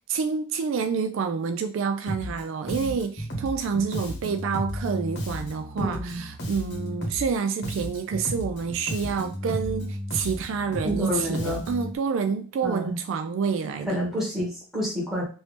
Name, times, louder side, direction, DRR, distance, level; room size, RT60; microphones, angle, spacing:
voice 1, 0.1-14.1, right 5 dB, 65° right, 0.3 m, -28 dB
Bass guitar, 2.1-2.4 2.7-7.4 7.6-12.0, equal, 55° left, 1.0 m, -33 dB
voice 2, 5.8-6.2 10.8-11.6 12.6-13.0 13.9-15.2, equal, ahead, 1.6 m, -28 dB
3.1 x 2.6 x 3.2 m
head